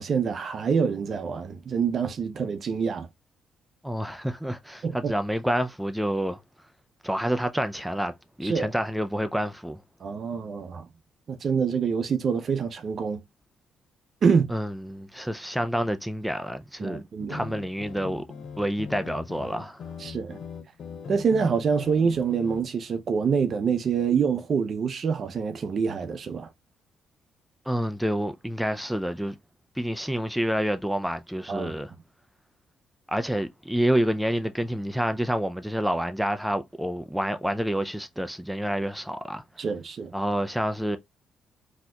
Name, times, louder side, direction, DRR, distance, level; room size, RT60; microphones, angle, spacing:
voice 1, 0.0-3.1 4.8-5.1 8.4-8.7 10.0-10.9 11.3-13.2 14.2-14.5 16.8-17.4 20.0-20.4 21.1-26.5 31.5-31.7 39.6-40.1, right 6 dB, 50° right, 0.6 m, -26 dB
voice 2, 3.8-6.4 7.0-9.8 14.5-17.0 17.3-18.2 18.6-19.8 27.7-29.3 29.8-31.9 33.1-39.4 40.1-41.0, equal, ahead, 0.3 m, -28 dB
sound 1, 17.2-22.6, left 6 dB, 65° left, 0.5 m, -40 dB
3.9 x 2.8 x 2.3 m
cardioid pair, 90°, 0 cm